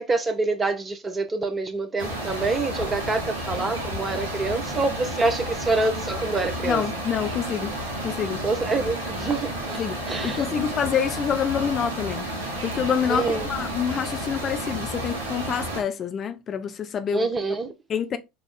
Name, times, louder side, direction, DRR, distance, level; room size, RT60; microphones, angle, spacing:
voice 1, 0.0-6.8 8.4-9.8 10.1-10.4 13.2-13.4 17.1-17.7, right 3 dB, 25° right, 0.9 m, -26 dB
sound 1, 2.0-15.8, right 1 dB, 80° right, 1.3 m, -31 dB
voice 2, 6.6-8.4 9.8-10.0 10.2-12.3 12.6-17.3 17.9-18.2, left 8 dB, 40° left, 0.5 m, -27 dB
5.4 x 2.4 x 3.7 m
figure-of-eight pair, 70°, 0 cm